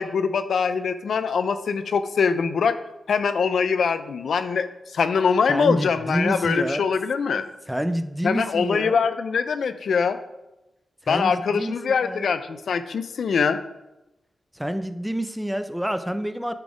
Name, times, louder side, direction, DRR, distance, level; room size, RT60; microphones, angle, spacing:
voice 1, 0.0-2.8 3.1-4.7 4.9-7.4 8.2-10.2 11.1-13.6, left 5 dB, 80° left, 10 dB, 0.5 m, -23 dB
voice 2, 5.5-6.9 7.7-9.0 11.0-12.3 14.5-16.5, equal, 5° right, 9 dB, 0.5 m, -28 dB
10.5 x 4.1 x 4.9 m, 0.95 s
wide cardioid pair, 105°, 0 cm